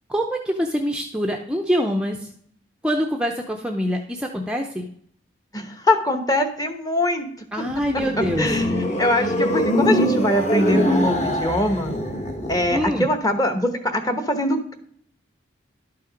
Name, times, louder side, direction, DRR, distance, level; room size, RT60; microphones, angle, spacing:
voice 1, 0.1-2.3 2.8-4.9 7.5-8.5 12.7-13.1, equal, 5° right, 2 dB, 0.6 m, -25 dB
voice 2, 5.5-7.3 7.6-7.7 7.9-8.0 8.4-11.9 12.5-14.8, left 1 dB, 20° left, 8 dB, 1.0 m, -22 dB
sound 1, 7.6-13.0, equal, 35° left, 1.3 m, -23 dB
11.5 x 5.6 x 5.1 m, 0.64 s
head